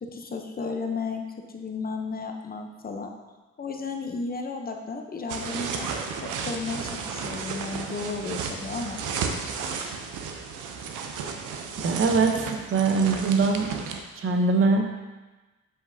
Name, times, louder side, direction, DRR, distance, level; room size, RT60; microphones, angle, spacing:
voice 1, 0.0-1.2 1.5-3.1 3.6-5.9 6.4-9.1, left 4 dB, 30° left, 3 dB, 0.7 m, -33 dB
sound 1, 5.3-14.0, right 5 dB, 85° right, 0.7 m, -33 dB
voice 2, 11.8-13.7 14.2-14.9, right 4 dB, 45° right, 4 dB, 0.9 m, -22 dB
7.5 x 5.1 x 2.7 m, 1.2 s
cardioid pair, 90°, 30 cm